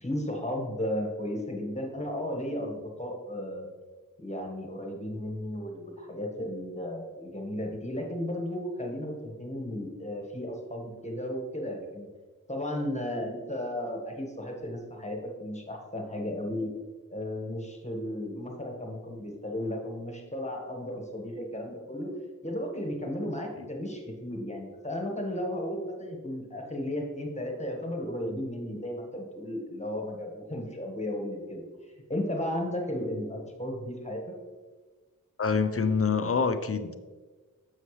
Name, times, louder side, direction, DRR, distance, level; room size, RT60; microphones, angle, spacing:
voice 1, 0.0-3.7 4.2-12.1 12.5-16.7 17.1-22.1 22.4-31.6 32.1-34.2, left 1 dB, 20° left, 1 dB, 1.6 m, -34 dB
voice 2, 35.4-36.9, left 5 dB, 40° left, 9 dB, 0.6 m, -26 dB
7.0 x 6.5 x 3.2 m, 1.3 s
cardioid pair, 45°, 34 cm